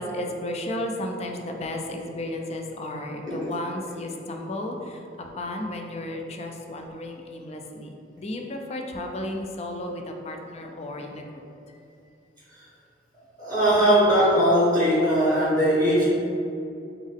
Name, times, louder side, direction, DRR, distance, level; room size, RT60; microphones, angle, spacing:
voice 1, 0.0-5.0 5.4-11.4, left 1 dB, 35° left, 2 dB, 0.4 m, -33 dB
voice 2, 13.4-16.1, equal, 10° left, -10 dB, 0.9 m, -20 dB
3.6 x 3.1 x 3.6 m, 2.6 s
head